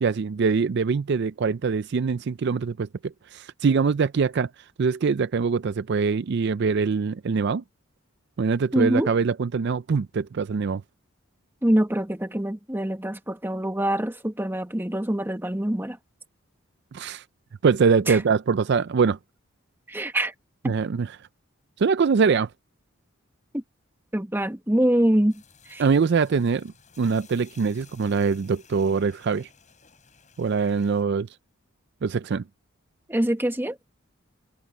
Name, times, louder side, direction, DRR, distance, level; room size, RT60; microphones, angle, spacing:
voice 1, 0.0-4.5 4.8-7.6 8.4-10.8 16.9-17.2 17.6-19.2 20.6-21.1 21.8-22.5 25.8-26.7 27.0-29.5 30.4-31.3 32.0-32.4, right 5 dB, 55° right, 0.4 m, -23 dB
voice 2, 8.7-9.1 11.6-16.0 18.1-18.2 19.9-20.3 23.5-23.6 24.1-25.8 33.1-33.8, right 1 dB, 10° right, 1.2 m, -24 dB
sound 1, 25.3-31.0, left 6 dB, 35° left, 7.9 m, -55 dB
head